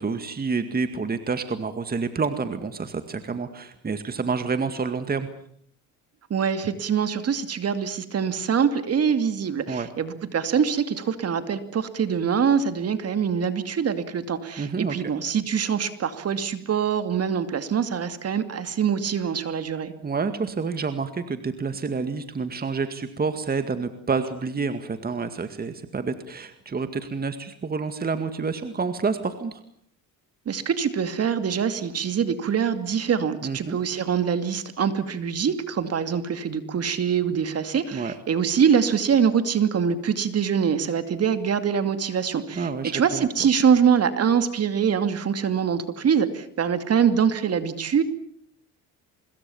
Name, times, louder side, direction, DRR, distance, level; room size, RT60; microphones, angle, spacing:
voice 1, 0.0-5.3 9.7-9.9 14.6-15.1 20.0-29.6 33.4-33.8 37.9-38.1 42.6-43.3, right 4 dB, 25° right, 9 dB, 2.1 m, -28 dB
voice 2, 6.3-19.9 30.5-48.0, right 7 dB, 45° right, 10 dB, 2.5 m, -24 dB
25.0 x 22.0 x 7.2 m, 0.66 s
cardioid pair, 95°, 34 cm